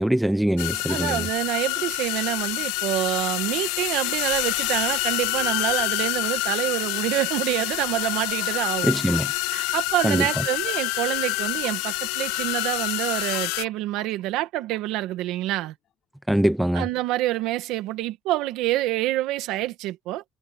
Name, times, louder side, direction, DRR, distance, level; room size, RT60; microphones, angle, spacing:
voice 1, 0.0-1.3 8.8-9.3 10.0-10.4 16.3-16.9, right 1 dB, ahead, 0.4 m, -22 dB
sound 1, 0.6-13.7, left 21 dB, 85° left, 0.7 m, -27 dB
voice 2, 0.9-8.9 9.5-15.7 16.7-20.2, right 16 dB, 60° right, 1.6 m, -27 dB
sound 2, 7.4-11.0 11.4-11.9 12.3-12.7 13.0-14.2 14.5-14.8 15.1-15.6, left 11 dB, 40° left, 5.1 m, -45 dB
cardioid pair, 175°, 0 cm